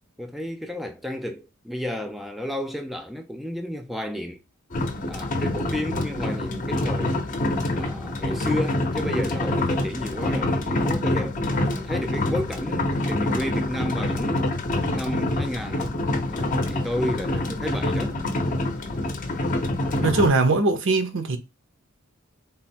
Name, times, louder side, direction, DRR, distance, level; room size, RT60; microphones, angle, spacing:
voice 1, 0.2-4.4 5.1-7.3 7.7-11.4 11.7-14.5 14.9-16.0 16.3-18.1, left 1 dB, ahead, 0.3 m, -31 dB
sound 1, 4.7-20.3, left 1 dB, 40° left, 0.7 m, -26 dB
voice 2, 20.0-21.4, right 3 dB, 60° right, 0.7 m, -21 dB
3.7 x 2.1 x 4.2 m
head